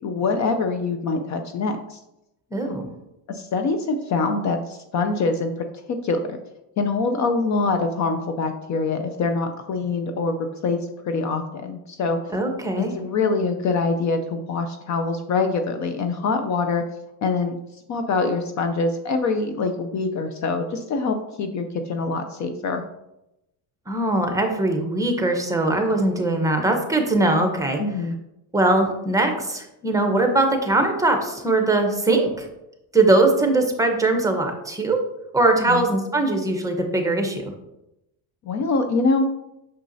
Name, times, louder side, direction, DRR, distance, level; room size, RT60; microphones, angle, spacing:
voice 1, 0.0-2.0 2.6-2.7 3.3-5.5 5.9-6.4 6.8-10.8 11.0-12.3 12.8-16.8 17.2-17.5 17.9-22.8 27.8-28.2 35.6-35.8 38.5-39.2, left 3 dB, 40° left, 7 dB, 0.6 m, -24 dB
voice 2, 2.5-2.9 12.3-12.9 23.9-27.8 28.5-32.5 32.9-35.0 35.3-37.5, right 2 dB, 10° right, 4 dB, 0.9 m, -21 dB
6.1 x 5.9 x 2.7 m, 0.87 s
cardioid pair, 115°, 43 cm